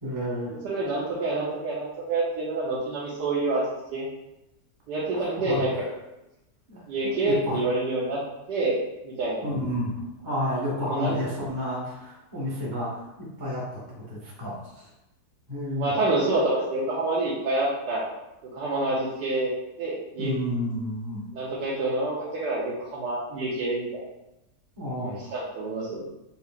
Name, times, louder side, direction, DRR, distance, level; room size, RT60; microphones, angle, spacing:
voice 1, 0.0-0.5 5.1-5.6 6.7-7.6 9.4-13.8 14.1-14.9 15.5-15.9 20.2-21.2 24.8-25.2, left 1 dB, 15° right, -7 dB, 0.9 m, -31 dB
voice 2, 0.6-3.6 3.9-4.0 4.9-5.8 6.9-8.2 8.5-8.8 9.0-9.4 10.8-11.3 15.7-18.0 18.5-19.5 19.8-20.3 21.3-24.0 25.0-26.0, right 2 dB, 85° right, -8 dB, 1.4 m, -27 dB
5.6 x 2.8 x 2.4 m, 0.92 s
omnidirectional pair, 1.8 m